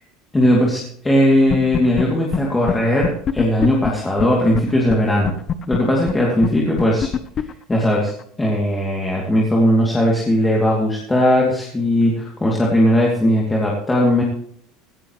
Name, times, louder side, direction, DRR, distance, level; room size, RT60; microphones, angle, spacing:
voice 1, 0.3-5.3 5.7-7.1 7.4-8.1 8.4-14.2, equal, 10° left, -3 dB, 2.7 m, -18 dB
sound 1, 1.5-2.0 2.3-2.4 2.7-2.8 3.0-4.6 4.9-5.0 5.2-8.2, left 8 dB, 35° left, 0.8 m, -22 dB
17.0 x 13.5 x 3.2 m, 0.65 s
supercardioid pair, 115°, 0 cm